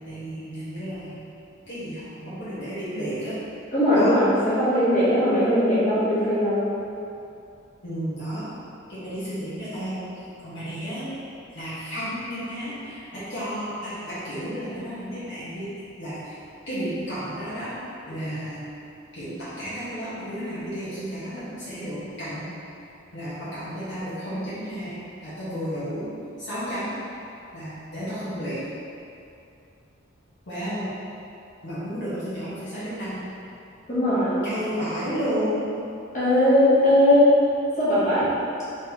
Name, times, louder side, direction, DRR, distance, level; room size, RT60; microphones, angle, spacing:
voice 1, 0.0-1.2 1.7-3.4 3.9-4.1 7.8-8.5 8.9-10.0 10.4-11.1 11.5-15.7 16.0-16.4 16.7-17.7 18.0-18.6 19.1-22.5 23.1-25.0 25.2-26.0 26.4-26.9 27.5-28.6 30.5-30.9 31.6-33.3 34.4-35.6, equal, 60° left, -12 dB, 1.2 m, -32 dB
voice 2, 3.7-6.6 33.9-34.4 36.1-37.3 37.8-38.2, left 1 dB, 40° left, -12 dB, 1.4 m, -19 dB
3.9 x 3.8 x 2.9 m, 2.7 s
head